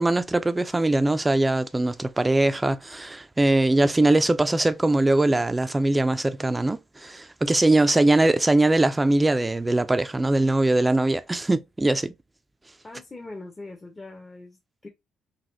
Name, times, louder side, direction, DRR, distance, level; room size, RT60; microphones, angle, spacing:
voice 1, 0.0-12.1, right 2 dB, 15° right, 0.4 m, -21 dB
voice 2, 12.8-14.9, left 2 dB, 20° left, 0.6 m, -42 dB
4.0 x 2.2 x 2.6 m
cardioid pair, 90°, 0 cm